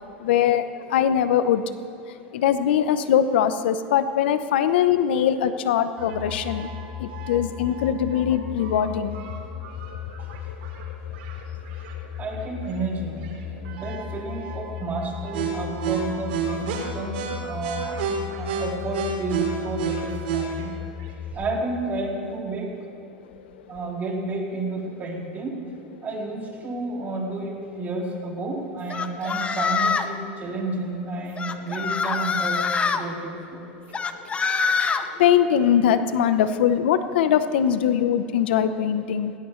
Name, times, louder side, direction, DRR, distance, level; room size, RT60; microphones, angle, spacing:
voice 1, 0.2-1.6 2.3-6.7 7.0-9.5 9.9-10.0 10.5-10.8 11.1-11.2 34.1-34.2 34.6-34.7 35.2-39.3, left 9 dB, 80° left, 11 dB, 0.9 m, -22 dB
sound 1, 6.0-21.3, right 1 dB, 75° right, 3.7 m, -32 dB
voice 2, 12.2-18.0 18.3-20.8 21.3-22.8 23.7-25.7 26.0-32.6 32.9-34.0, right 2 dB, 30° right, -2 dB, 3.5 m, -31 dB
sound 2, 28.9-30.2 31.4-33.0 33.9-35.0, left 5 dB, 20° left, 0.8 m, -24 dB
19.5 x 19.0 x 3.2 m, 2.7 s
supercardioid pair, 115°, 6 cm